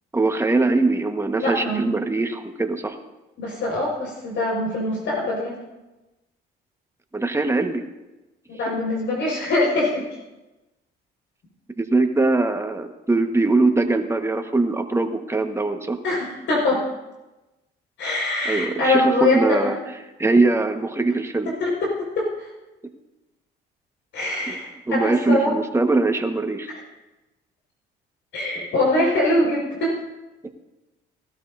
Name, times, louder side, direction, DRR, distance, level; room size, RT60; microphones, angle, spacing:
voice 1, 0.1-3.0 7.1-7.8 11.8-16.0 18.4-19.8 20.2-21.5 24.5-24.6 24.9-26.7, right 3 dB, 15° right, 5 dB, 1.5 m, -21 dB
voice 2, 1.4-1.8 3.4-5.6 8.5-10.0 16.0-16.8 18.0-19.7 21.6-22.5 24.1-25.5 28.3-29.9, left 2 dB, 65° left, -3 dB, 5.3 m, -23 dB
19.0 x 13.0 x 2.7 m, 1.0 s
supercardioid pair, 80°, 21 cm